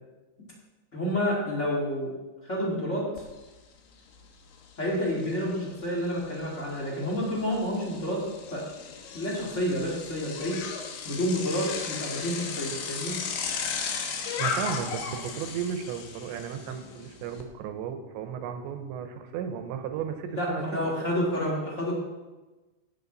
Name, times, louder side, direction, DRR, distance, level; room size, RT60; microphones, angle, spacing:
voice 1, 0.9-2.1 2.4-3.1 4.8-8.2 8.5-8.6 9.1-10.6 11.0-13.2 20.2-22.0, equal, 30° left, -4 dB, 1.4 m, -29 dB
Bicycle, 3.2-3.3 3.6-17.4, left 6 dB, 85° left, 3.8 m, -36 dB
voice 2, 14.4-20.6, right 7 dB, 80° right, 7 dB, 3.1 m, -34 dB
17.0 x 7.8 x 4.0 m, 1.2 s
omnidirectional pair, 5.3 m